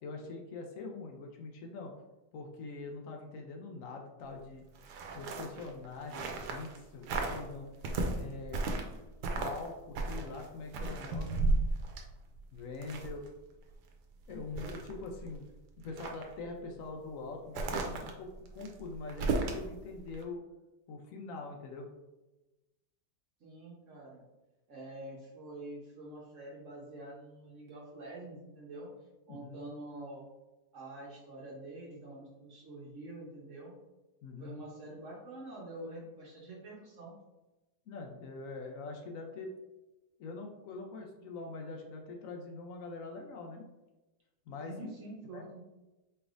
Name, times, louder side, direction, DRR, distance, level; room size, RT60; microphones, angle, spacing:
voice 1, 0.0-1.9 2.3-4.6 5.1-7.7 8.2-8.6 9.4-11.5 12.5-13.2 14.3-15.5 15.8-20.4 20.9-21.9 29.3-29.6 34.2-34.6 37.9-39.5 40.2-43.6 44.5-44.9 45.3-45.5, left 3 dB, 70° left, 2 dB, 0.8 m, -43 dB
sound 1, 4.8-6.8 7.0-7.4 7.8-9.0 9.2-9.7 9.9-13.3 13.7-13.8 14.2-15.4 15.8-16.3 17.5-19.7 20.1-20.2, right 3 dB, 80° right, 1.2 m, -34 dB
voice 2, 23.4-24.2 24.7-28.9 29.3-30.2 30.7-33.7 34.4-37.1 44.6-45.6, right 1 dB, 55° right, -3 dB, 1.0 m, -46 dB
4.6 x 3.3 x 2.5 m, 1.1 s
omnidirectional pair, 1.8 m